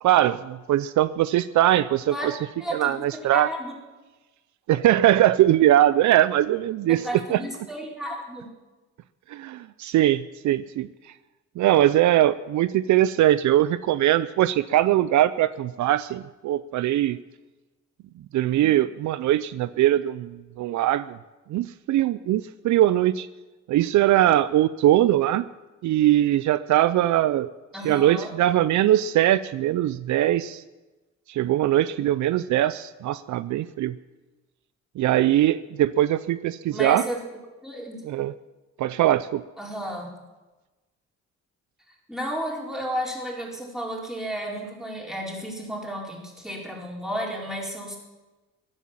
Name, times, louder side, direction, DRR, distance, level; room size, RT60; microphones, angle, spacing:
voice 1, 0.0-2.4 2.7-3.5 4.7-7.0 7.3-7.4 9.3-10.9 11.6-17.2 18.3-21.2 21.5-23.3 23.7-25.4 25.8-27.5 27.8-30.6 31.3-34.0 35.0-37.0 38.0-38.3 38.8-39.4, right 13 dB, 70° right, 15 dB, 0.5 m, -21 dB
voice 2, 2.6-3.7 6.9-8.5 27.7-28.3 36.7-37.2 37.6-38.0 39.6-40.1 42.1-48.0, equal, ahead, -2 dB, 4.4 m, -32 dB
15.0 x 11.0 x 7.3 m, 1.2 s
cardioid pair, 90°, 30 cm